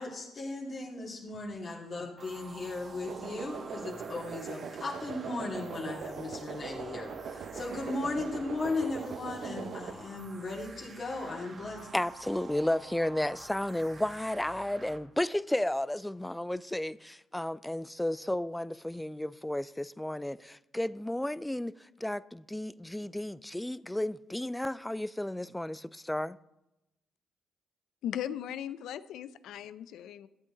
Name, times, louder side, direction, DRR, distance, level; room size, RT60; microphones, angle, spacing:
voice 1, 0.0-11.9, left 2 dB, 45° left, 2.4 m, -37 dB
sound 1, 2.2-15.0, right 3 dB, 45° right, 1.3 m, -50 dB
sound 2, 3.1-9.9, right 6 dB, 65° right, 0.8 m, -41 dB
voice 2, 11.9-26.4, left 1 dB, 5° left, 0.3 m, -33 dB
voice 3, 28.0-30.3, left 10 dB, 80° left, 0.4 m, -38 dB
13.0 x 8.3 x 3.9 m
cardioid pair, 90°, 0 cm